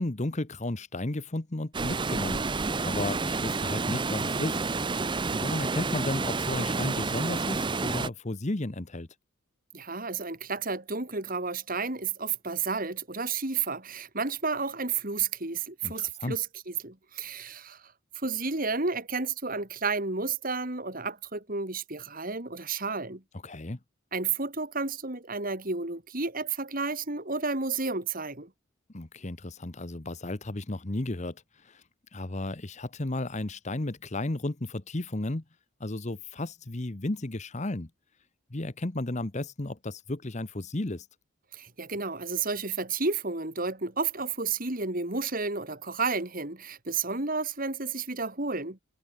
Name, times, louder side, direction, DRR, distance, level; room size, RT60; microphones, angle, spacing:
voice 1, 0.0-2.4 2.8-4.6 5.3-9.1 15.8-16.4 23.4-23.8 28.9-31.4 31.6-31.8 32.1-35.4 35.8-37.9 38.5-41.1, left 2 dB, 35° left, 1.1 m, -33 dB
Water, 1.7-8.1, right 3 dB, 20° right, 0.6 m, -29 dB
voice 2, 9.7-17.8 18.2-23.2 24.1-28.5 41.5-48.8, right 4 dB, 40° right, 2.8 m, -31 dB
head